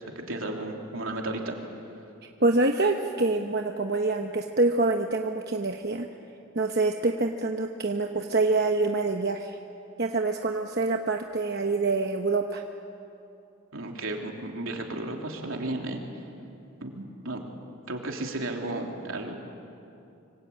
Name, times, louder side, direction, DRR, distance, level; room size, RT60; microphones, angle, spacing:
voice 1, 0.1-1.6 13.7-16.0 16.8-17.4 17.9-19.4, right 2 dB, 75° right, 1 dB, 3.3 m, -33 dB
voice 2, 2.4-6.1 6.5-9.6 10.0-12.6, right 3 dB, 50° right, 3 dB, 1.0 m, -26 dB
26.0 x 24.5 x 8.7 m, 2.7 s
head